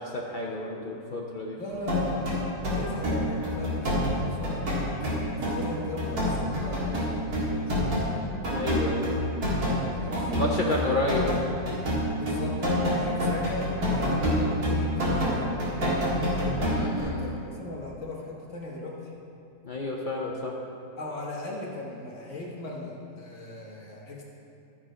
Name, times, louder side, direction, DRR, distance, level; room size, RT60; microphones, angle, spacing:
voice 1, 0.0-1.6 8.5-9.1 10.3-11.3 16.7-17.3 19.6-20.6, left 2 dB, 75° left, -2 dB, 0.4 m, -30 dB
voice 2, 1.5-2.3 2.6-4.7 5.0-8.0 9.7-10.6 12.1-16.4 17.0-19.1 21.0-24.2, left 2 dB, 45° left, -3 dB, 1.5 m, -38 dB
sound 1, 1.9-8.1 8.4-17.0, equal, 60° right, 2.3 m, -27 dB
13.0 x 4.8 x 5.0 m, 2.8 s
omnidirectional pair, 1.9 m